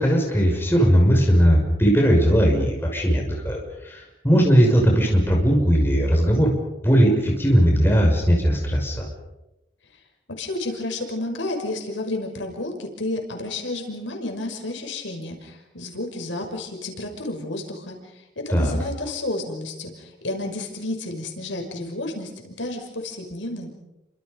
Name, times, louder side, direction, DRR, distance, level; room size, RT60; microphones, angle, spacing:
voice 1, 0.0-6.5 6.8-9.1 18.5-18.8, equal, 10° left, -1 dB, 6.3 m, -18 dB
voice 2, 10.4-18.0 18.4-23.7, left 2 dB, 85° left, 3 dB, 5.9 m, -31 dB
29.5 x 26.5 x 5.4 m, 0.92 s
head